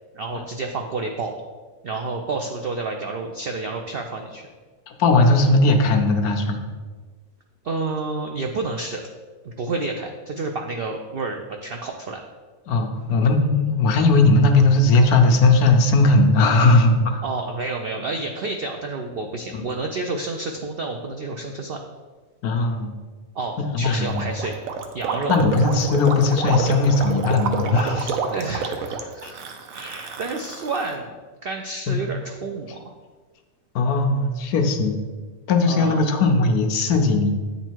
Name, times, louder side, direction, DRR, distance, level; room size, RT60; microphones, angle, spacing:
voice 1, 0.1-1.3 1.8-4.5 7.6-9.0 9.4-12.2 17.2-21.8 23.3-24.6 24.9-25.4 27.9-31.2 31.4-32.9 35.6-36.0, right 3 dB, 85° right, 3 dB, 0.5 m, -30 dB
voice 2, 4.9-6.6 12.7-17.2 19.5-19.6 22.4-22.9 23.7-24.2 25.3-28.1 29.2-29.3 31.9-32.0 33.7-35.0 35.5-37.4, left 2 dB, 75° left, 4 dB, 1.2 m, -18 dB
Gurgling, 24.1-31.0, right 5 dB, 65° right, 1.0 m, -29 dB
8.9 x 4.0 x 4.5 m, 1.4 s
omnidirectional pair, 1.7 m